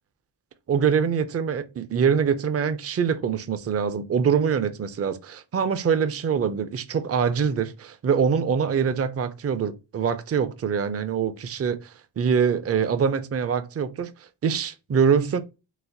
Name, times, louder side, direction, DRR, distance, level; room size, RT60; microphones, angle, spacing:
voice 1, 0.7-14.1 14.4-15.4, right 7 dB, 35° right, 0.4 m, -24 dB
4.0 x 2.2 x 2.6 m
wide cardioid pair, 80°, 47 cm